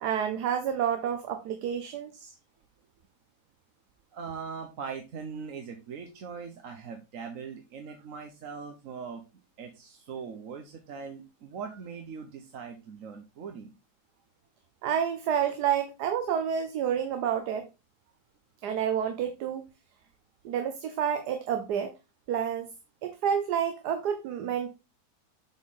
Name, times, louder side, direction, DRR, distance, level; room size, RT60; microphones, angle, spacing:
voice 1, 0.0-2.3 14.8-17.7 18.6-19.7 20.4-21.9 22.3-22.7 23.0-24.7, right 8 dB, 85° right, 1.4 m, -29 dB
voice 2, 4.1-9.2 9.6-13.7, right 6 dB, 60° right, 1.2 m, -41 dB
7.3 x 4.4 x 3.6 m
omnidirectional pair, 1.7 m